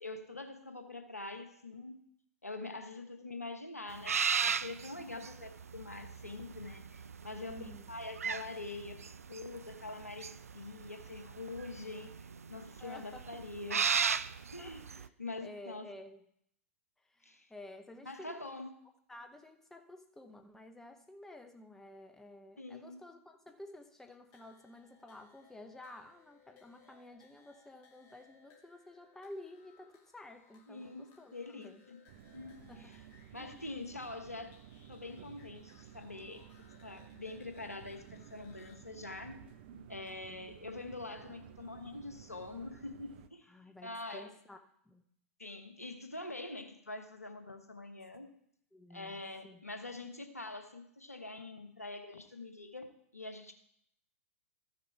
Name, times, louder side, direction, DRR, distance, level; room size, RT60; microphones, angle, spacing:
voice 1, 0.0-2.0 2.4-9.0 9.3-13.9 14.5-14.8 15.2-15.9 17.2-17.5 18.0-18.7 22.6-23.0 30.7-32.0 32.3-33.0 33.3-34.5 34.9-39.4 39.9-43.5 43.8-44.3 45.4-48.3 48.9-53.5, left 2 dB, 90° left, 7 dB, 1.2 m, -45 dB
sound 1, 3.9-15.1, right 6 dB, 75° right, 0.3 m, -36 dB
voice 2, 7.5-7.9 12.8-13.4 14.6-15.1 15.4-16.3 17.0-18.5 19.1-31.8 32.6-33.0 33.4-33.6 40.3-40.5 43.5-44.6 44.8-45.0 48.7-49.6, left 1 dB, 5° left, 6 dB, 0.8 m, -52 dB
sound 2, 24.3-38.8, left 5 dB, 40° left, 1.5 m, -66 dB
sound 3, 32.1-43.3, right 10 dB, 45° right, 0.7 m, -55 dB
14.0 x 6.6 x 4.6 m, 0.71 s
figure-of-eight pair, 105°, 8 cm